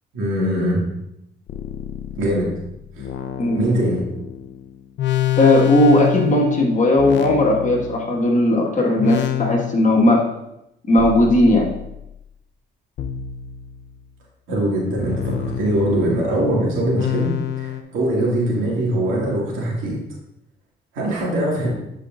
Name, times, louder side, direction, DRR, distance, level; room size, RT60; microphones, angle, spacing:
voice 1, 0.1-0.8 2.2-2.5 3.0-3.1 3.5-4.0 14.5-17.3 17.6-20.0 20.9-21.7, right 1 dB, 90° right, -3 dB, 2.1 m, -22 dB
sound 1, 1.5-8.5 9.0-10.1 11.0-12.1 13.0-14.2 15.0-17.8, left 12 dB, 65° left, 0.6 m, -28 dB
voice 2, 5.4-10.2 10.9-11.7, left 1 dB, 40° left, -1 dB, 1.7 m, -16 dB
10.5 x 4.6 x 2.5 m, 0.85 s
cardioid pair, 90°, 20 cm